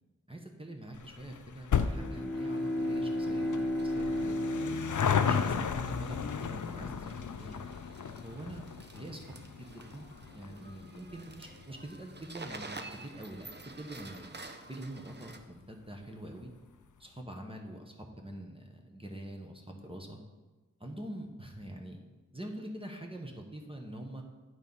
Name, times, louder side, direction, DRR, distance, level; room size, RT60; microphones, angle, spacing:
voice 1, 0.3-4.8 5.2-7.6 8.2-8.7 8.9-9.2 9.6-10.1 10.3-12.7 13.0-14.3 14.7-16.5 17.0-20.2 20.8-22.0 22.3-24.2, right 1 dB, 15° right, 1 dB, 1.1 m, -45 dB
sound 1, 0.9-13.7 14.0-14.1 15.0-15.1 15.3-15.4 15.6-15.7, left 6 dB, 75° left, 0.5 m, -35 dB
Bowed string instrument, 1.7-6.3, left 1 dB, 5° left, 1.4 m, -34 dB
sound 2, 2.5-15.4, right 3 dB, 35° right, 0.7 m, -51 dB
9.2 x 4.5 x 5.5 m, 1.2 s
wide cardioid pair, 45°, 31 cm